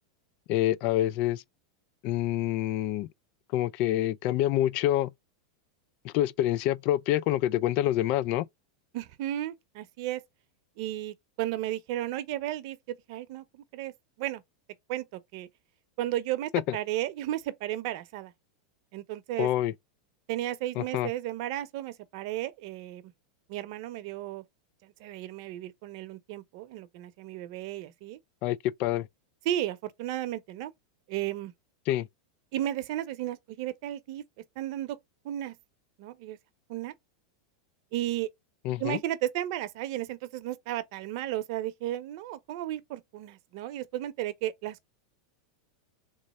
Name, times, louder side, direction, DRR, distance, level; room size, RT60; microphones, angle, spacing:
voice 1, 0.5-1.4 2.0-3.1 3.5-5.1 6.0-8.5 16.7-16.8 19.4-19.7 20.8-21.1 28.4-29.1 31.9-32.1 38.6-39.0, left 13 dB, 45° left, 0.3 m, -27 dB
voice 2, 8.9-10.2 10.8-13.9 14.2-14.4 14.9-15.1 15.3-15.5 16.0-18.3 18.9-19.5 20.3-23.0 23.5-24.4 24.8-28.2 29.4-30.7 31.1-31.5 32.5-34.2 34.6-35.0 35.2-35.5 36.0-36.4 36.7-36.9 37.9-38.3 38.8-44.9, right 13 dB, 55° right, 0.7 m, -34 dB
3.5 x 3.1 x 4.1 m
supercardioid pair, 130°, 3 cm